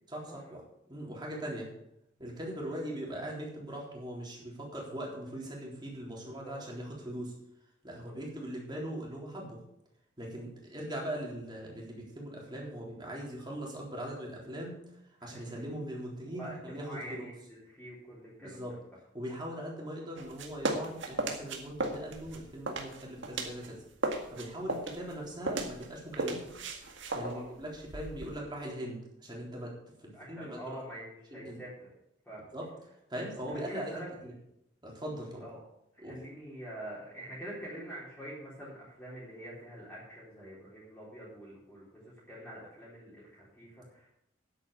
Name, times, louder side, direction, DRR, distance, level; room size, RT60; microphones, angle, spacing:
voice 1, 0.1-0.6 0.9-1.7 2.2-7.3 7.8-9.6 10.2-14.8 15.2-17.2 18.4-18.7 19.1-23.8 24.3-26.5 27.1-29.7 30.0-30.8 31.3-31.6 32.5-32.7 33.1-33.9 34.2-34.3 34.8-35.4 36.0-36.2, right 1 dB, 20° right, -2 dB, 3.7 m, -40 dB
voice 2, 7.8-8.1 15.2-15.7 16.3-18.8 24.6-24.8 27.2-27.4 30.1-31.9 32.2-32.4 33.5-34.1 35.4-35.6 36.1-44.1, right 1 dB, 5° left, -9 dB, 3.8 m, -46 dB
sound 1, 20.2-23.7 24.0-28.4, right 2 dB, 65° right, 1.9 m, -36 dB
10.0 x 9.0 x 6.7 m, 0.81 s
head